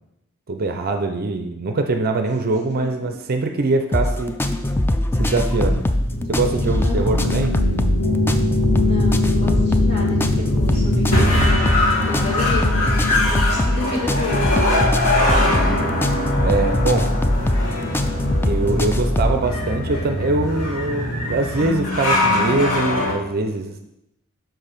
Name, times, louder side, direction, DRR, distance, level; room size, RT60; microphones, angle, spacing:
voice 1, 0.5-4.3 5.2-5.9 6.3-7.5 16.4-17.1 18.5-23.9, right 3 dB, 45° right, 5 dB, 0.5 m, -23 dB
voice 2, 2.4-3.1 6.8-7.2 8.7-14.4 18.8-19.0, left 3 dB, 30° left, -5 dB, 2.3 m, -31 dB
sound 1, 3.9-19.4, left 1 dB, 10° left, 0.3 m, -21 dB
sound 2, 5.8-23.1, left 1 dB, 85° left, 1.7 m, -22 dB
6.1 x 4.6 x 5.0 m, 0.86 s
head